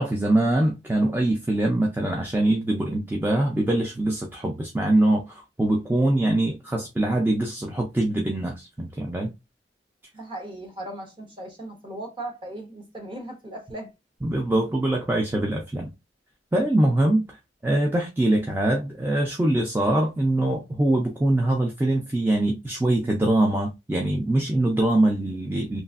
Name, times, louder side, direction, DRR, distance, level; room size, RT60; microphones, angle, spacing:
voice 1, 0.0-9.3 14.2-15.9 16.5-17.3 17.6-25.8, right 1 dB, 10° right, 0.4 m, -23 dB
voice 2, 10.1-13.9, right 1 dB, 30° right, 1.0 m, -37 dB
3.0 x 2.4 x 2.4 m
head